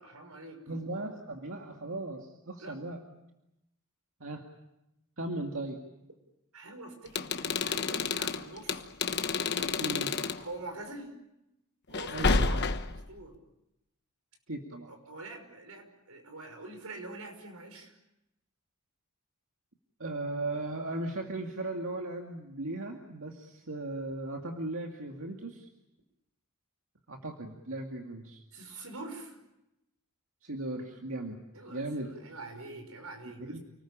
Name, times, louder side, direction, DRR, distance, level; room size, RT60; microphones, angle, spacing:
voice 1, 0.0-0.6 2.6-2.8 6.5-8.8 9.3-9.7 10.4-11.2 11.9-12.6 13.1-13.4 14.9-18.0 28.5-29.4 31.5-33.6, right 2 dB, 90° right, 6 dB, 5.7 m, -45 dB
voice 2, 0.7-3.0 4.2-4.4 5.2-5.8 9.8-10.1 12.1-12.7 14.5-14.9 20.0-25.7 27.1-28.4 30.4-31.4 31.7-32.1 33.5-33.6, right 2 dB, 65° right, 2 dB, 2.3 m, -37 dB
sound 1, 7.1-10.4 11.9-13.0, left 4 dB, 50° left, 1.2 m, -30 dB
29.5 x 19.5 x 8.8 m, 0.89 s
head